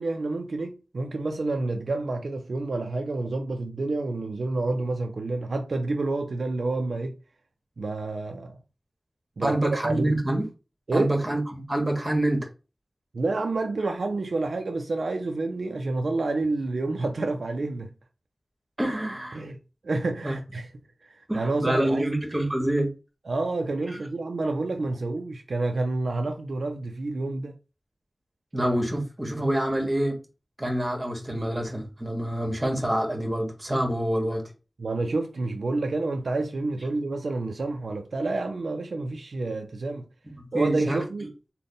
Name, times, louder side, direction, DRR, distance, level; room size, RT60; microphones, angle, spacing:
voice 1, 0.0-7.2 7.8-8.6 9.4-10.2 10.9-11.1 13.1-17.9 19.3-19.6 19.8-20.7 21.0-22.1 23.3-27.5 34.8-40.1 40.5-41.3, right 2 dB, 90° right, 0.3 m, -29 dB
voice 2, 9.4-10.5 10.9-12.5 18.8-19.4 20.2-20.4 21.3-22.9 23.9-24.0 28.5-30.2 30.6-34.4 40.4-41.0, right 1 dB, 30° right, 1.3 m, -26 dB
3.5 x 2.1 x 3.8 m
wide cardioid pair, 50°, 0 cm